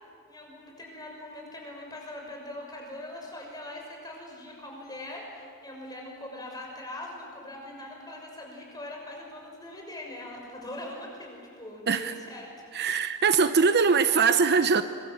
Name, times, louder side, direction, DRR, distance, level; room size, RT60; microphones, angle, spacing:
voice 1, 0.3-12.7, left 1 dB, 20° left, 0 dB, 6.4 m, -41 dB
voice 2, 12.7-14.8, right 5 dB, 50° right, 10 dB, 0.8 m, -22 dB
26.0 x 22.0 x 7.8 m, 2.2 s
head